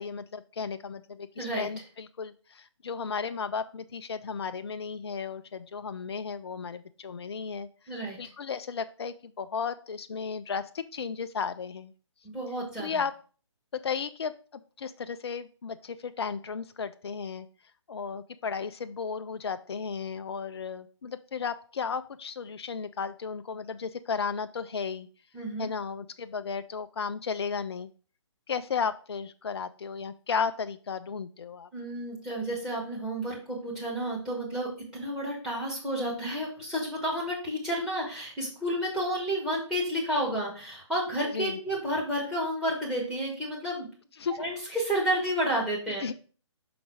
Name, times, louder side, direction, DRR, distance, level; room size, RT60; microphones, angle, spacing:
voice 1, 0.0-7.7 8.2-11.9 12.8-13.1 13.7-14.3 14.8-17.5 17.9-25.1 25.6-27.9 28.5-31.7 41.3-41.6 44.2-44.4 46.0-46.1, left 6 dB, 60° left, 11 dB, 0.4 m, -34 dB
voice 2, 1.4-1.7 7.9-8.2 12.2-13.0 25.3-25.7 31.7-43.9 44.4-46.0, right 1 dB, 5° right, -3 dB, 1.4 m, -31 dB
6.0 x 4.0 x 4.8 m, 0.40 s
figure-of-eight pair, 140°, 15 cm